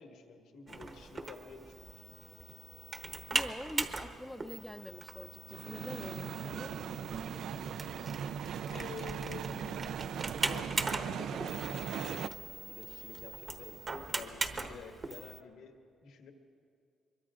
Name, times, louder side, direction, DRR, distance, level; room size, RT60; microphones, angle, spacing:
voice 1, 0.0-2.2 8.7-9.9 10.1-10.2 10.5-13.8 14.1-15.8 16.0-16.3, left 5 dB, 85° left, 3 dB, 1.6 m, -49 dB
sound 1, 0.7-15.4, right 3 dB, 35° right, 1.1 m, -40 dB
voice 2, 3.3-6.8, left 1 dB, 5° left, 8 dB, 0.5 m, -45 dB
sound 2, 5.5-12.3, right 8 dB, 70° right, 0.3 m, -39 dB
24.5 x 22.5 x 2.5 m, 2.3 s
cardioid pair, 90°, 0 cm